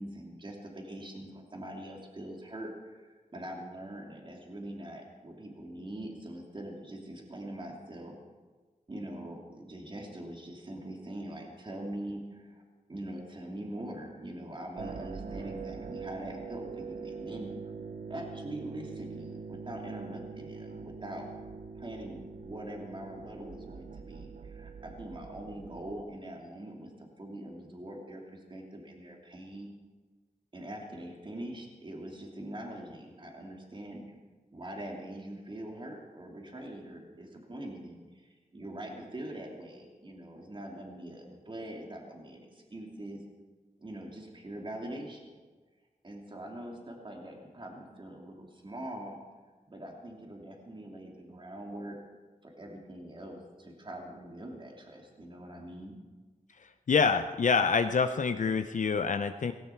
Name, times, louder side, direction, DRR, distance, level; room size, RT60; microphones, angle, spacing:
voice 1, 0.0-8.2 8.9-12.6 12.9-17.5 18.1-21.3 21.8-29.7 30.5-34.0 34.5-43.2 43.8-45.4 46.0-49.2 49.7-52.0 52.4-56.0, right 1 dB, 35° right, 0 dB, 2.8 m, -43 dB
sound 1, 14.8-26.0, right 5 dB, 70° right, 0.8 m, -43 dB
voice 2, 56.9-59.5, left 5 dB, 65° left, 8 dB, 0.7 m, -26 dB
17.5 x 17.0 x 4.6 m, 1.3 s
wide cardioid pair, 120°, 14 cm